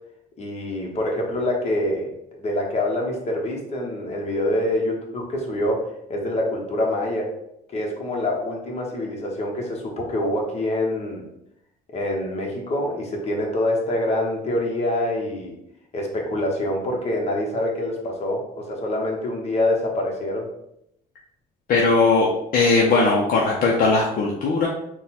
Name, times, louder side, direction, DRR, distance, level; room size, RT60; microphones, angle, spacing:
voice 1, 0.4-2.1 2.4-7.3 7.7-11.3 11.9-15.5 15.9-20.5, left 1 dB, 40° left, -1 dB, 1.1 m, -25 dB
voice 2, 21.7-22.3 22.5-24.7, left 3 dB, 55° left, -2 dB, 0.7 m, -18 dB
3.7 x 2.3 x 4.2 m, 0.78 s
cardioid pair, 110°, 17 cm